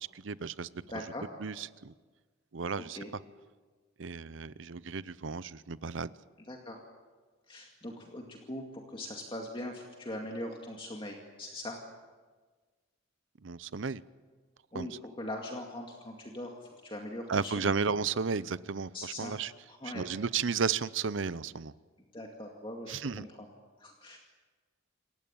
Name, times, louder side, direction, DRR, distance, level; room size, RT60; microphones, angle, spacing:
voice 1, 0.1-0.7 1.4-1.9 2.5-3.0 4.0-6.1 13.4-14.0 14.7-14.9 17.3-19.5 19.9-21.7 22.9-23.2, right 5 dB, 65° right, 17 dB, 0.7 m, -33 dB
voice 2, 0.9-1.3 2.8-3.1 6.4-6.8 7.5-11.8 14.7-17.7 18.9-19.4 19.7-20.0 22.1-23.5 23.8-24.2, left 1 dB, 25° left, 1 dB, 2.2 m, -41 dB
28.0 x 15.5 x 9.1 m, 1.4 s
head